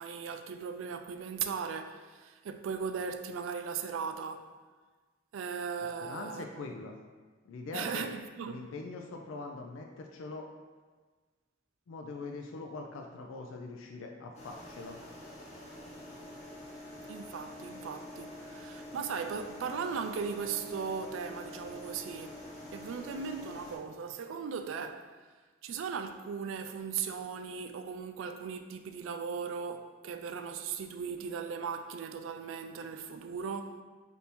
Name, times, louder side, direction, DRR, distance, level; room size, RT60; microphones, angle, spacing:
voice 1, 0.0-4.5 5.3-6.6 7.7-8.6 17.1-22.4 22.7-25.1 25.6-33.8, right 6 dB, 80° right, 0.3 m, -38 dB
voice 2, 6.0-7.0 7.4-8.1 8.5-10.5 11.9-15.0, left 3 dB, 85° left, 0.4 m, -42 dB
sound 1, 14.3-23.8, left 1 dB, 35° left, 0.8 m, -46 dB
3.4 x 2.7 x 4.2 m
head